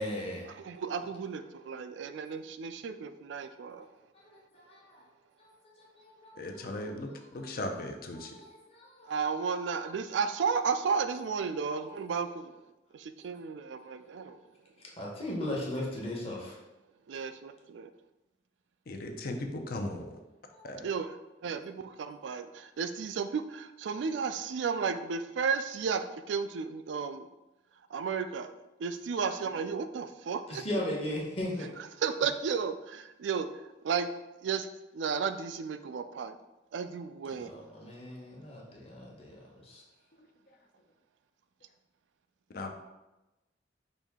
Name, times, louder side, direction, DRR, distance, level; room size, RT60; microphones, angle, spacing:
voice 1, 0.0-0.5 4.1-5.0 5.4-5.5 5.9-6.9 7.3-7.4 8.1-9.1 11.8-11.9 13.2-13.3 14.1-14.3 15.0-16.6 20.5-20.6 30.5-31.7 37.2-39.8, left 1 dB, 35° left, -3 dB, 1.0 m, -38 dB
voice 2, 0.6-3.9 9.1-12.5 12.9-14.4 17.1-17.9 20.8-21.1 21.4-27.3 27.9-28.5 28.8-30.6 32.0-33.5 33.8-34.1 34.4-34.7 34.9-36.4 36.7-37.5, right 6 dB, 80° right, 9 dB, 0.3 m, -33 dB
voice 3, 6.3-8.3 18.9-20.2 20.6-20.9 40.2-40.3 42.5-42.7, left 1 dB, 55° left, 4 dB, 0.5 m, -37 dB
5.1 x 2.7 x 3.6 m, 1.0 s
head